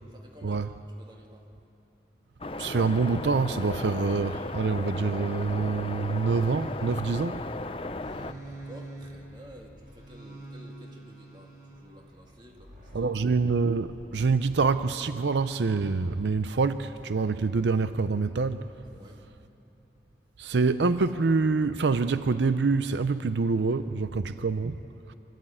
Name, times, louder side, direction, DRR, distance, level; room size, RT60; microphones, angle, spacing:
voice 1, 0.1-0.7 1.0-1.4 8.1-13.1 18.8-19.2, equal, 25° right, 2.1 m, -51 dB
sound 1, 2.4-8.3, left 2 dB, 30° left, 0.6 m, -36 dB
voice 2, 2.6-7.5 12.9-18.7 20.4-24.8, right 4 dB, 80° right, 0.5 m, -26 dB
sound 2, 4.9-14.5 15.1-16.3, right 1 dB, 45° right, 6.5 m, -47 dB
25.0 x 14.0 x 8.7 m
head